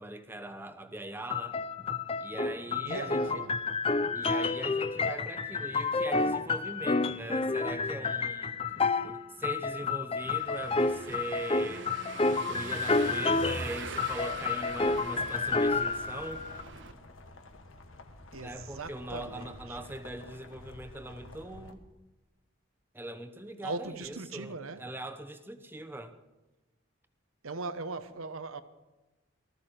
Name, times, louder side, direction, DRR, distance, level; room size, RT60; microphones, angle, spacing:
voice 1, 0.0-1.6 2.2-3.4 4.1-8.5 9.0-11.9 12.3-16.5 18.4-21.8 22.9-26.2, right 1 dB, 10° right, 0.9 m, -41 dB
sound 1, 1.3-9.2 9.4-13.7 14.0-16.6, left 3 dB, 25° left, 0.5 m, -30 dB
voice 2, 2.8-3.6 18.3-19.8 23.6-24.9 27.4-28.6, right 3 dB, 90° right, 1.0 m, -39 dB
Car passing by / Engine, 10.2-16.9, right 3 dB, 60° right, 1.2 m, -43 dB
sound 2, 14.7-21.7, left 2 dB, 75° left, 1.6 m, -49 dB
19.5 x 14.0 x 4.5 m
head